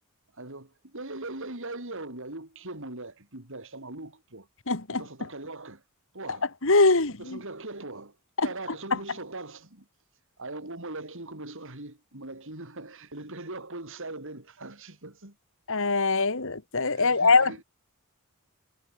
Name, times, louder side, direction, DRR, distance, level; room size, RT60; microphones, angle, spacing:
voice 1, 0.3-4.5 4.9-5.8 6.1-6.5 7.2-8.2 8.4-9.9 10.4-15.3 16.9-17.6, right 2 dB, 60° right, 4.7 m, -40 dB
voice 2, 4.7-5.0 6.6-7.4 8.4-8.5 15.7-17.5, left 3 dB, 65° left, 2.5 m, -22 dB
head